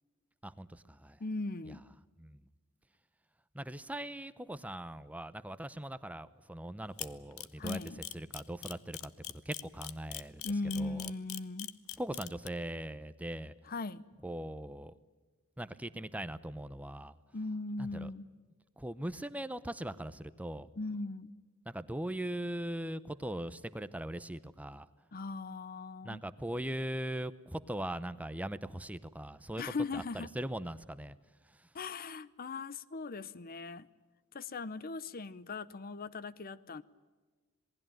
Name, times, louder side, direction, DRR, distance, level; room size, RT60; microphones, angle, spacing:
voice 1, 0.4-1.2 1.7-1.8 2.2-2.4 3.5-7.8 8.1-11.1 12.0-13.5 14.2-15.0 15.6-17.1 17.8-18.1 18.8-20.7 21.7-24.9 26.0-29.6 29.9-31.2 31.5-31.7, right 1 dB, 5° right, 13 dB, 0.7 m, -40 dB
voice 2, 1.2-1.8 7.6-8.0 10.4-11.7 13.7-14.0 17.3-18.3 20.8-21.4 25.1-26.2 29.6-30.3 31.7-33.9 34.3-36.8, left 3 dB, 40° left, 17 dB, 0.7 m, -39 dB
Camera, 7.0-12.5, left 14 dB, 70° left, 1.0 m, -41 dB
27.0 x 20.0 x 9.2 m, 1.3 s
head